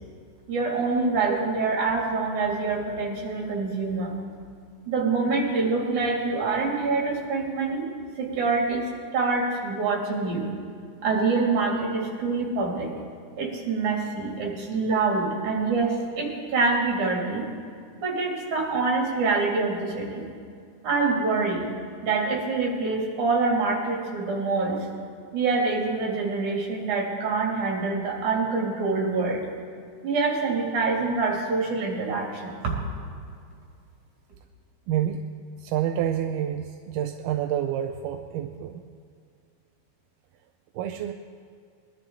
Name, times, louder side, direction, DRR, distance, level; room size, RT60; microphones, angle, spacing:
voice 1, 0.5-4.2 4.9-7.8 8.2-8.9 9.1-10.5 11.0-12.9 13.4-17.5 18.0-20.3 20.8-21.7 22.0-24.9 25.3-29.5 30.0-32.5, right 4 dB, 65° right, -2 dB, 3.9 m, -25 dB
voice 2, 34.9-35.2 35.6-38.8 40.7-41.1, right 10 dB, 80° right, 5 dB, 2.0 m, -28 dB
22.0 x 12.0 x 3.8 m, 2.2 s
omnidirectional pair, 3.9 m